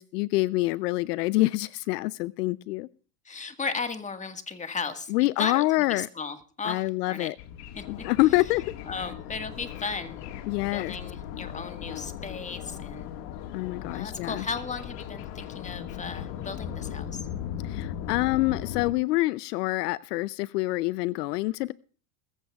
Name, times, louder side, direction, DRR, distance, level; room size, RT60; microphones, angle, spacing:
voice 1, 0.0-2.9 5.1-6.1 6.6-7.3 7.9-8.7 10.5-11.0 13.5-14.4 17.6-21.7, left 19 dB, 75° left, 0.6 m, -26 dB
voice 2, 3.2-5.1 5.4-7.3 7.7-7.8 8.9-10.3 10.7-13.1 13.9-17.3, left 4 dB, 15° left, 1.6 m, -35 dB
sound 1, 7.4-18.9, left 10 dB, 55° left, 1.8 m, -38 dB
20.5 x 15.0 x 2.3 m
supercardioid pair, 110°, 48 cm